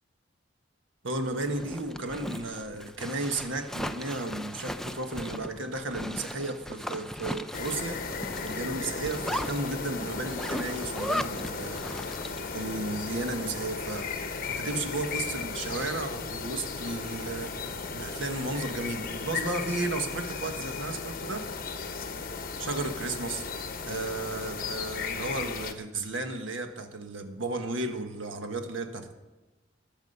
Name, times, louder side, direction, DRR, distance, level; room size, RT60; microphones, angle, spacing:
voice 1, 1.0-8.1 8.4-21.5 22.6-23.4 23.9-29.1, right 2 dB, 90° right, 6 dB, 1.4 m, -34 dB
Zipper (clothing), 1.3-12.5, equal, ahead, 0.4 m, -37 dB
sound 1, 7.5-25.7, left 5 dB, 50° left, 1.1 m, -36 dB
21.5 x 7.3 x 5.5 m, 1.1 s
head